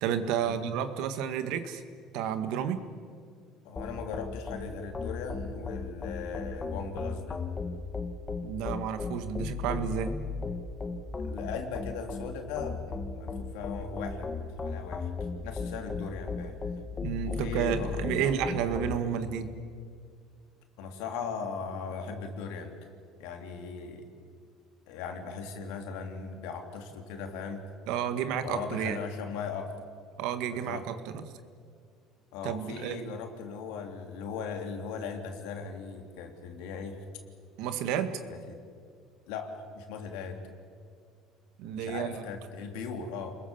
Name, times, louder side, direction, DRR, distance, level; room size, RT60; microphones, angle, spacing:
voice 1, 0.0-1.8 2.1-2.8 8.4-10.2 17.0-19.5 27.9-29.0 30.2-31.2 32.4-33.0 37.6-38.2 41.6-42.2, right 8 dB, 75° right, 9 dB, 1.9 m, -31 dB
voice 2, 3.6-7.4 11.2-15.1 15.4-16.6 17.3-18.6 20.8-22.7 23.2-24.1 24.9-27.7 28.4-29.7 30.5-30.9 32.3-37.0 38.3-38.6 39.3-40.4 41.8-43.4, left 5 dB, 85° left, 4 dB, 3.4 m, -38 dB
sound 1, 3.8-19.0, left 4 dB, 25° left, 1.6 m, -36 dB
29.0 x 21.5 x 7.3 m, 2.1 s
cardioid pair, 115°, 0 cm